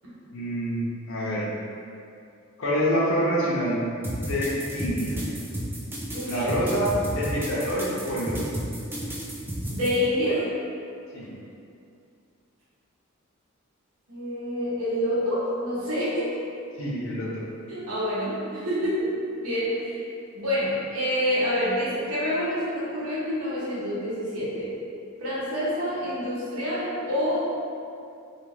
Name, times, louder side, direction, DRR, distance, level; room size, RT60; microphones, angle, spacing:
voice 1, 0.3-1.5 2.6-3.8 4.1-5.2 6.3-8.4 11.1-11.3 16.8-17.4, equal, 65° left, -7 dB, 0.5 m, -26 dB
sound 1, 4.0-10.0, right 1 dB, 10° right, 0.3 m, -32 dB
voice 2, 6.1-6.5 9.7-10.5 14.1-16.3 17.7-19.1 19.4-20.0 20.3-24.7 25.2-27.6, equal, 75° right, -10 dB, 0.8 m, -27 dB
2.3 x 2.3 x 3.1 m, 2.5 s
head